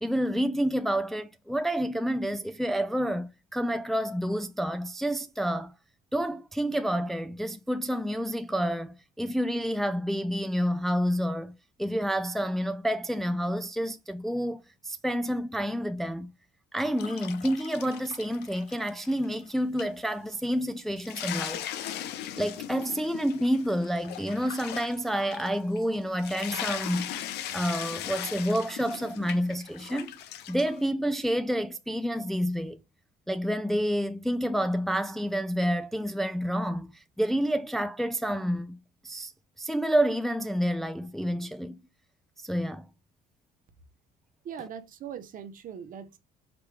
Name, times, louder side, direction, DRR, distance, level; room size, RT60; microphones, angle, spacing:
voice 1, 0.0-5.7 6.1-11.5 11.8-16.3 16.7-21.7 22.4-27.1 27.5-30.2 30.5-32.8 33.3-38.8 39.0-39.3 39.6-41.8 42.4-42.9, equal, ahead, 0.4 m, -29 dB
sound 1, 17.0-19.5 19.8-19.9 20.4-20.5 20.8-30.8, left 11 dB, 80° left, 0.7 m, -38 dB
voice 2, 44.4-46.2, right 8 dB, 55° right, 0.9 m, -40 dB
5.1 x 3.1 x 3.3 m
cardioid pair, 110°, 17 cm